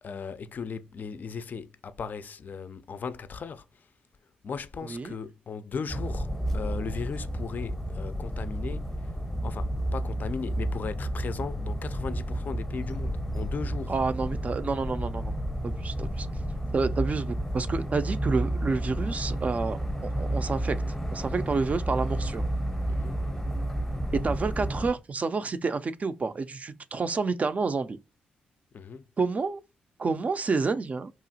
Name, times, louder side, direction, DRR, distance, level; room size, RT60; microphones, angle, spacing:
voice 1, 0.0-3.9 4.2-9.2 9.4-14.0 22.9-23.2 28.7-29.1, left 5 dB, 50° left, 0.3 m, -37 dB
sound 1, 5.9-24.9, right 1 dB, 10° left, 0.7 m, -31 dB
voice 2, 13.9-16.3 16.7-19.8 20.2-20.8 21.1-22.4 24.1-28.0 29.2-29.6 30.0-31.1, right 4 dB, 40° right, 0.3 m, -29 dB
2.9 x 2.3 x 2.6 m
supercardioid pair, 50°, 4 cm